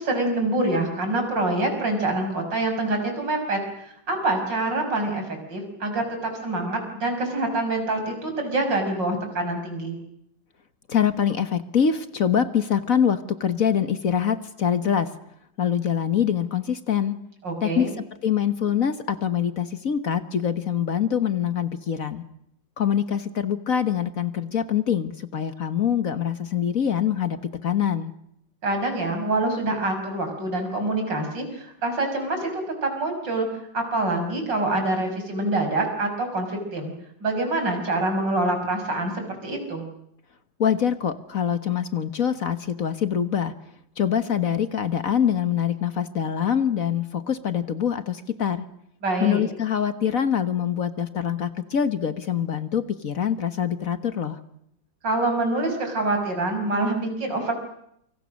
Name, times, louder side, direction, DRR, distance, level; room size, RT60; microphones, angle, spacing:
voice 1, 0.0-10.0 17.4-17.9 28.6-36.9 37.2-39.9 49.0-49.4 55.0-57.5, right 2 dB, 75° right, 5 dB, 6.7 m, -26 dB
voice 2, 10.9-15.1 15.6-17.1 17.6-17.9 18.2-22.2 22.8-28.1 40.6-43.5 44.0-48.6 49.2-54.4, left 8 dB, 50° left, 11 dB, 1.6 m, -24 dB
28.0 x 25.5 x 6.5 m, 0.73 s
omnidirectional pair, 2.0 m